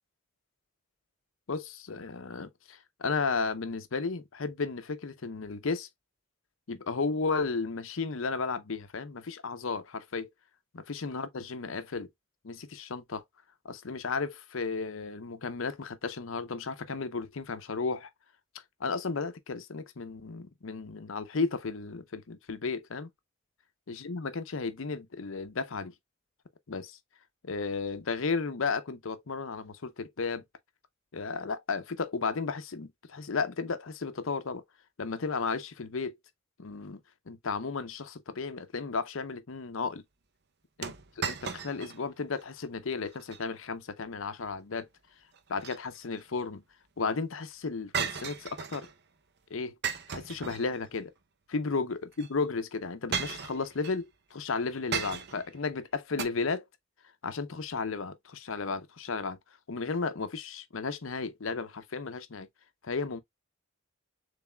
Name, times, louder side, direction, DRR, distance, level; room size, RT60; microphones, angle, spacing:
voice 1, 1.5-5.9 6.7-10.3 10.7-12.1 12.4-13.2 13.6-18.1 18.8-23.1 23.9-25.9 26.7-27.0 27.4-30.4 31.1-34.6 35.0-36.2 36.6-37.0 37.3-40.0 40.8-44.9 45.5-46.6 47.0-48.9 49.5-49.7 50.1-51.1 51.5-56.6 57.2-59.4 59.7-62.5 62.8-63.2, left 4 dB, 70° left, 0.7 m, -34 dB
sound 1, 40.8-42.0 42.4-42.5 43.1-43.4 45.3-46.2 47.9-48.9 49.8-51.0 52.1-52.3 53.1-54.0 54.9-55.5 56.2-56.3, right 6 dB, 50° right, 0.6 m, -35 dB
7.0 x 3.4 x 2.2 m
head